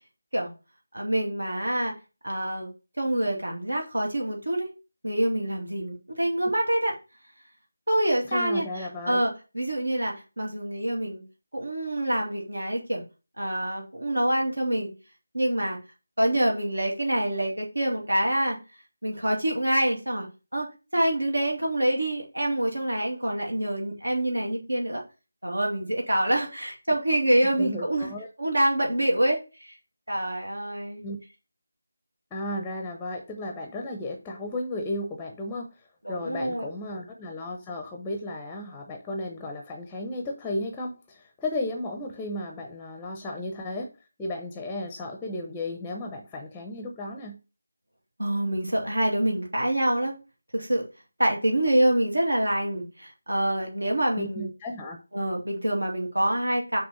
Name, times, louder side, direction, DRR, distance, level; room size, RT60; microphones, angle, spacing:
voice 1, 0.9-1.9 2.2-2.7 3.0-4.7 5.0-6.9 7.9-8.7 9.0-11.2 11.5-13.0 13.4-14.9 15.3-15.8 16.2-18.6 19.0-20.3 20.5-20.7 20.9-25.0 25.4-28.1 28.4-29.4 30.1-31.0 36.0-36.7 48.2-50.1 50.5-50.8 51.2-54.5 55.1-56.8, right 1 dB, 80° right, 0 dB, 2.6 m, -26 dB
voice 2, 8.3-9.2 27.6-28.3 31.0-31.2 32.3-35.7 36.1-43.9 44.2-47.4 54.2-55.0, left 1 dB, 10° left, 4 dB, 0.7 m, -34 dB
6.1 x 3.6 x 5.7 m, 0.31 s
figure-of-eight pair, 160°, 0 cm